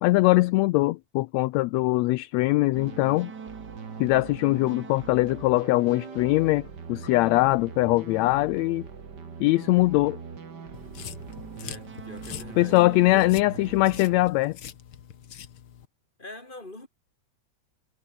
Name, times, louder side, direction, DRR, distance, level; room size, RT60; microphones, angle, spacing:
voice 1, 0.0-3.3 4.0-8.9 9.4-10.2 12.6-14.6, left 20 dB, 80° left, 1.6 m, -22 dB
sound 1, 2.7-14.3, right 6 dB, 35° right, 2.4 m, -41 dB
sound 2, 10.7-15.9, left 9 dB, 55° left, 1.9 m, -44 dB
voice 2, 11.6-13.3 16.2-16.9, left 2 dB, 15° left, 5.1 m, -43 dB
omnidirectional pair, 3.5 m